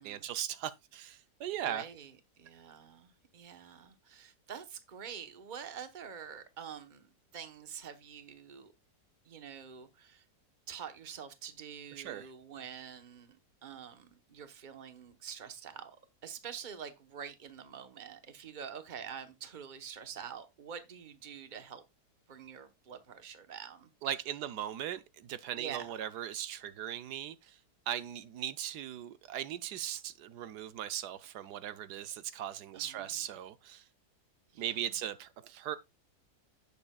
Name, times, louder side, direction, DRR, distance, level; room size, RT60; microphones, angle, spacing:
voice 1, 0.0-1.8 12.0-12.3 24.0-27.6 27.9-33.8 34.6-35.8, right 11 dB, 80° right, 1.2 m, -39 dB
voice 2, 1.6-2.1 2.4-7.1 7.3-8.7 9.3-10.2 10.7-13.4 13.6-16.0 16.2-21.8 22.3-23.9 25.6-26.0 32.7-33.2 34.5-34.7, right 7 dB, 35° right, 1.1 m, -46 dB
10.5 x 8.7 x 2.3 m
omnidirectional pair, 1.7 m